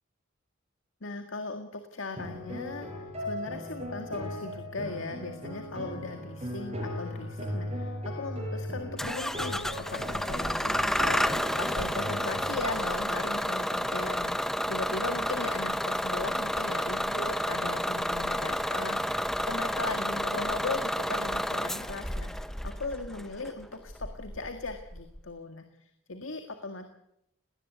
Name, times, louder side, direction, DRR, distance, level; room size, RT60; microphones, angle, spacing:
voice 1, 1.0-10.7 11.6-27.0, left 3 dB, 75° left, 6 dB, 1.9 m, -38 dB
sound 1, 2.2-12.6, equal, 30° right, 6.9 m, -37 dB
Bus / Engine starting, 9.0-25.2, equal, ahead, 0.8 m, -31 dB
20.0 x 18.5 x 8.3 m, 0.77 s
head